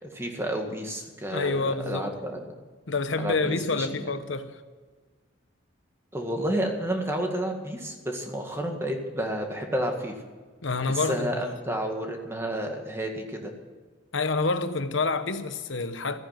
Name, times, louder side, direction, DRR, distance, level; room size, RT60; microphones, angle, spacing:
voice 1, 0.0-2.6 3.2-4.1 6.1-10.1 10.8-13.5, right 1 dB, 15° right, 1.9 m, -31 dB
voice 2, 1.3-2.1 2.9-4.6 10.6-11.4 14.1-16.2, left 3 dB, 75° left, 1.0 m, -28 dB
14.5 x 10.0 x 7.7 m
head